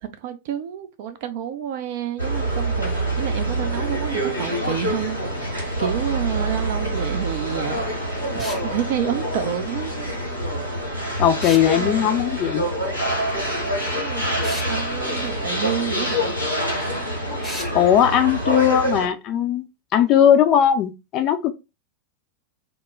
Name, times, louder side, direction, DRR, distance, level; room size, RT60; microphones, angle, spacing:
voice 1, 0.0-8.0 8.3-9.9 11.8-12.1 13.7-14.4 14.7-16.4, right 10 dB, 50° right, 0.4 m, -29 dB
sound 1, 2.2-19.1, right 1 dB, 90° right, 1.0 m, -26 dB
sound 2, 8.4-8.7 11.4-11.7 14.4-14.7 17.4-17.7, left 1 dB, 5° left, 0.7 m, -33 dB
voice 2, 11.2-12.6 17.7-19.7 19.9-21.5, left 9 dB, 35° left, 0.4 m, -18 dB
2.2 x 2.0 x 3.5 m
figure-of-eight pair, 90°, 0 cm